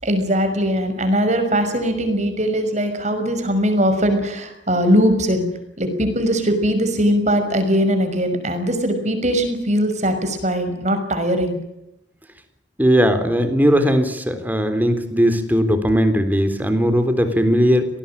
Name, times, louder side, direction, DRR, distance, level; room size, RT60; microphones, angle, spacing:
voice 1, 0.0-5.5 5.8-11.6, equal, 40° right, 8 dB, 6.0 m, -20 dB
voice 2, 12.8-17.9, equal, 10° right, 8 dB, 3.7 m, -18 dB
27.0 x 19.5 x 8.8 m, 0.83 s
head